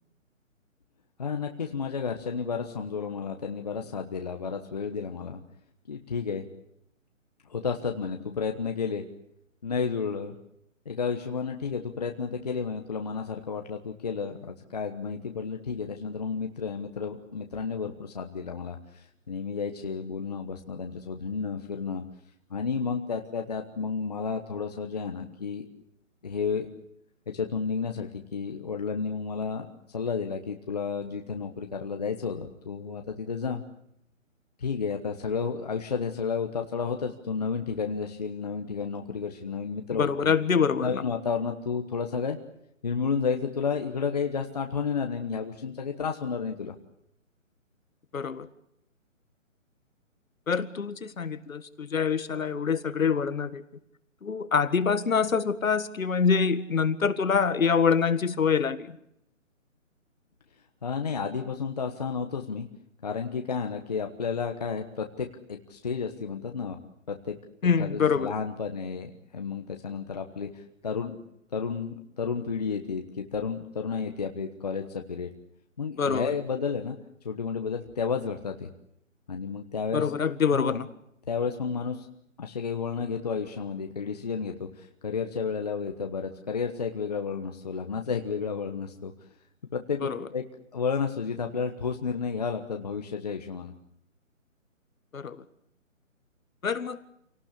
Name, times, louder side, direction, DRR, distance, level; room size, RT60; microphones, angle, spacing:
voice 1, 1.2-5.4 5.9-6.5 7.5-9.0 9.6-10.3 10.8-22.0 22.5-25.7 26.2-26.7 27.3-33.6 34.6-40.3 40.8-42.4 42.8-46.8 60.8-62.7 63.0-66.8 67.1-67.3 67.8-71.2 71.5-75.3 75.8-77.0 77.2-78.7 79.3-80.0 80.5-80.8 81.3-82.1 82.4-89.1 89.7-90.4 90.7-93.7, left 5 dB, 30° left, 4 dB, 1.2 m, -32 dB
voice 2, 40.0-41.0 48.1-48.5 50.5-53.6 54.2-59.0 67.6-68.3 76.0-76.3 79.9-80.9 90.0-90.3 95.1-95.4 96.6-97.0, left 6 dB, 80° left, 13 dB, 1.8 m, -25 dB
27.5 x 18.0 x 8.4 m, 0.75 s
hypercardioid pair, 175°, 40 cm